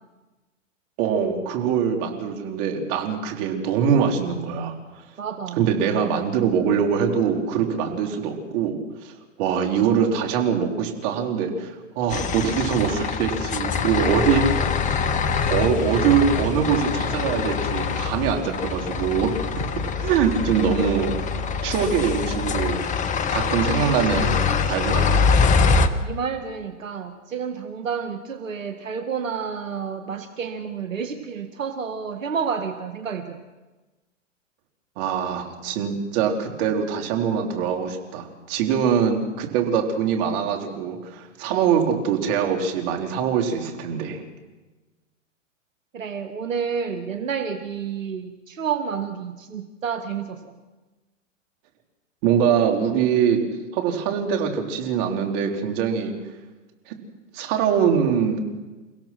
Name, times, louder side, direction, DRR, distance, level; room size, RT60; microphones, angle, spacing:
voice 1, 1.0-5.0 5.6-8.8 9.0-9.1 9.4-14.6 15.5-19.5 20.0-21.2 21.6-22.8 23.3-25.2 35.0-44.2 52.2-53.4 53.7-56.1 56.9-57.0 57.3-58.4, right 7 dB, 45° right, 3 dB, 3.9 m, -23 dB
voice 2, 5.2-5.7 26.0-33.4 45.9-50.4, right 6 dB, 80° right, 7 dB, 1.9 m, -30 dB
sound 1, 12.1-25.9, left 5 dB, 20° left, 1.2 m, -24 dB
29.5 x 16.5 x 6.1 m, 1.2 s
hypercardioid pair, 120°, 38 cm